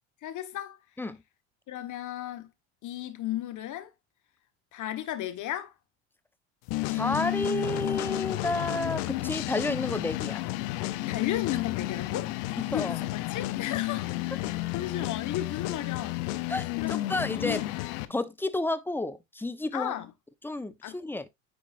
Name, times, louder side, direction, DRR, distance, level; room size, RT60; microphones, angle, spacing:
voice 1, 0.2-0.8 1.7-2.5 2.8-3.9 4.7-5.7 11.1-12.3 12.7-16.5 16.8-17.6 19.7-20.1 20.8-21.0, left 12 dB, 55° left, 1.5 m, -35 dB
sound 1, 6.7-18.1, left 18 dB, 75° left, 0.8 m, -32 dB
voice 2, 6.9-10.4 12.6-13.0 16.5-17.6 18.1-19.9 20.4-21.3, left 2 dB, 5° left, 0.8 m, -31 dB
9.7 x 4.6 x 2.6 m
supercardioid pair, 85°, 37 cm